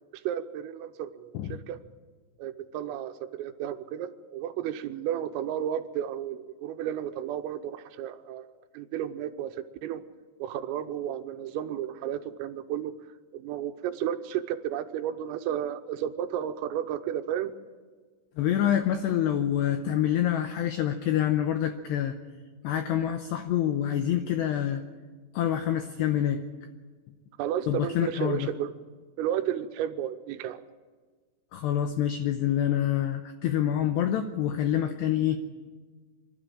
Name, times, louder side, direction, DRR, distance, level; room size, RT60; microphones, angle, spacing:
voice 1, 0.1-1.8 2.4-10.0 10.4-13.0 13.3-17.5 27.4-28.7 29.2-30.6, right 10 dB, 85° right, 9 dB, 3.4 m, -33 dB
voice 2, 18.4-22.2 22.6-24.8 25.3-26.4 27.7-28.5 31.5-35.4, left 10 dB, 80° left, 7 dB, 2.4 m, -26 dB
25.5 x 12.5 x 8.8 m, 1.4 s
omnidirectional pair, 6.0 m